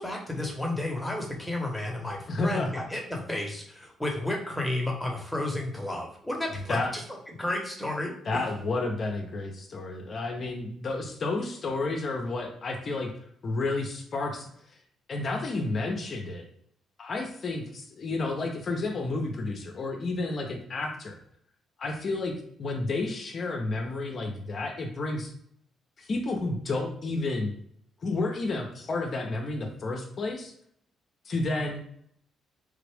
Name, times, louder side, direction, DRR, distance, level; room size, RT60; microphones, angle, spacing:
voice 1, 0.0-7.0 7.3-8.4, left 1 dB, 10° left, 0 dB, 1.0 m, -32 dB
voice 2, 2.3-2.7 6.7-6.9 8.2-13.1 13.4-14.5 15.1-16.4 17.0-21.2 21.8-25.3 26.0-27.5 28.0-30.5 31.2-31.8, left 2 dB, 45° left, 3 dB, 0.6 m, -31 dB
3.3 x 2.4 x 3.4 m, 0.66 s
cardioid pair, 90°, 0 cm